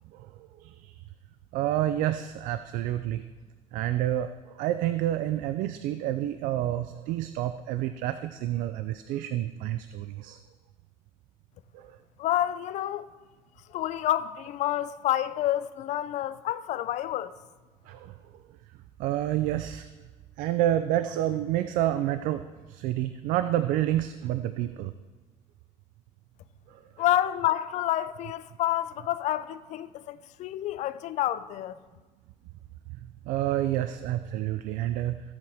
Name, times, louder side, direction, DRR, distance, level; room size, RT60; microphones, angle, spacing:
voice 1, 0.6-0.9 1.5-3.2 3.7-10.4 11.7-12.0 17.9-18.1 19.0-19.9 20.4-24.9 26.7-27.0 33.0-35.2, right 13 dB, 80° right, 0.5 m, -29 dB
voice 2, 12.2-13.1 13.7-17.3 27.0-31.8, left 13 dB, 60° left, 0.5 m, -28 dB
17.0 x 8.0 x 3.5 m
cardioid pair, 130°, 14 cm